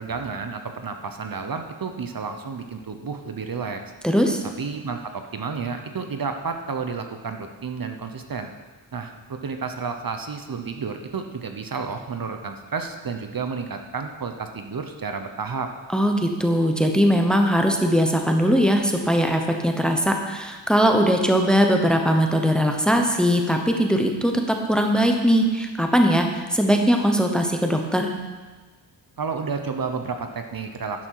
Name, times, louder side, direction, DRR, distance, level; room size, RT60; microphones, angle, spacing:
voice 1, 0.0-3.8 4.6-8.5 8.9-15.7 29.2-31.1, right 5 dB, 50° right, 6 dB, 0.8 m, -31 dB
voice 2, 4.0-4.4 15.9-24.3 24.7-28.1, equal, ahead, 3 dB, 0.9 m, -20 dB
12.5 x 10.0 x 4.7 m, 1.3 s
wide cardioid pair, 170°, 46 cm